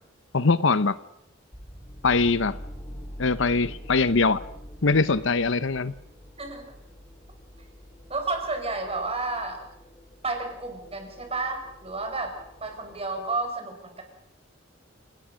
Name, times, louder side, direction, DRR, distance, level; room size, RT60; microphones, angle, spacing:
voice 1, 0.3-1.0 2.0-2.6 3.2-4.4 4.8-5.9, left 4 dB, 70° left, 0.8 m, -22 dB
sound 1, 1.5-13.5, equal, 25° left, 2.9 m, -45 dB
voice 2, 6.4-6.7 8.1-9.6 10.2-14.0, right 3 dB, 30° right, 5.3 m, -31 dB
28.0 x 18.5 x 6.4 m
head